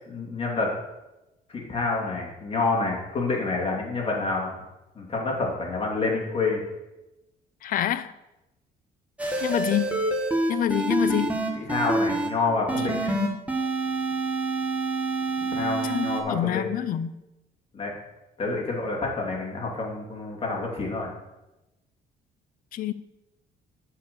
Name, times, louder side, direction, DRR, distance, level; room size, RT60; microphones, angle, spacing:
voice 1, 0.1-0.7 1.5-4.5 4.9-6.6 11.6-12.9 15.4-16.6 17.7-17.9 18.4-21.1, left 3 dB, 35° left, 2.9 m, -28 dB
voice 2, 7.6-8.1 9.4-10.1 10.5-11.5 12.8-13.4 15.8-17.1 22.7-22.9, left 11 dB, 55° left, 0.5 m, -27 dB
sound 1, 9.2-12.3 12.7-16.2, right 2 dB, 10° right, 1.4 m, -27 dB
8.3 x 4.9 x 6.9 m
cardioid pair, 110°, 17 cm